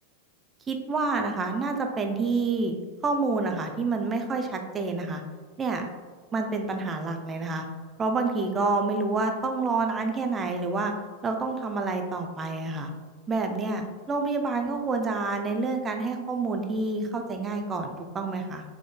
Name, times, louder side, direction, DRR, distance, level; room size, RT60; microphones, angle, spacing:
voice 1, 0.7-2.7 3.0-5.2 5.6-5.8 6.3-7.6 8.0-10.9 11.2-12.9 13.3-18.6, right 3 dB, 20° right, 4 dB, 0.4 m, -28 dB
3.6 x 3.5 x 2.2 m, 1.5 s
figure-of-eight pair, 90°, 0 cm